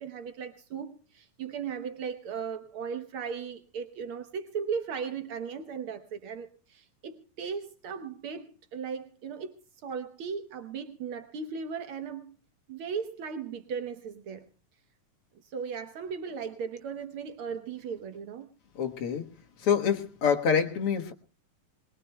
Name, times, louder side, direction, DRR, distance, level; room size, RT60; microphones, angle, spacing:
voice 1, 0.0-9.5 9.8-12.3 12.7-14.5 15.4-18.5, right 6 dB, 80° right, 1.1 m, -37 dB
voice 2, 18.8-19.3 19.6-21.1, left 7 dB, 55° left, 1.9 m, -26 dB
22.0 x 21.5 x 2.2 m
omnidirectional pair, 3.8 m